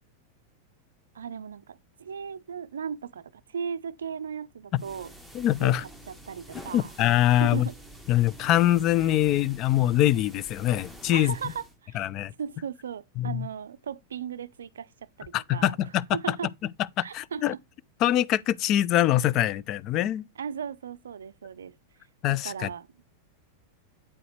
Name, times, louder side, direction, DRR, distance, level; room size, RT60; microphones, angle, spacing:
voice 1, 1.1-5.1 5.6-6.9 7.4-7.7 11.1-12.1 12.4-15.7 16.1-16.5 17.0-17.6 20.4-21.7 22.3-22.9, right 7 dB, 75° right, 0.4 m, -37 dB
sound 1, 4.7-11.8, right 1 dB, 10° left, 1.6 m, -48 dB
voice 2, 5.3-5.8 6.7-7.7 8.1-11.3 11.9-12.3 13.2-13.5 15.3-16.0 17.0-17.5 18.0-20.2 22.2-22.7, left 13 dB, 40° left, 0.4 m, -23 dB
8.6 x 4.8 x 3.2 m
figure-of-eight pair, 95°, 0 cm